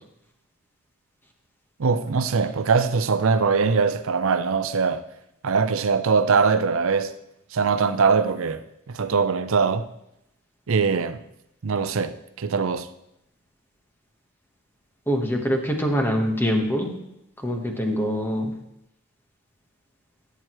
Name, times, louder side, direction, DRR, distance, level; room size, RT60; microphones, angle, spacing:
voice 1, 1.8-5.0 5.4-7.1 7.5-9.9 10.7-11.2 11.6-12.9, right 5 dB, 65° right, 0.5 m, -22 dB
voice 2, 15.1-17.0 17.4-18.5, equal, 10° left, 1.2 m, -24 dB
13.5 x 8.0 x 3.1 m
head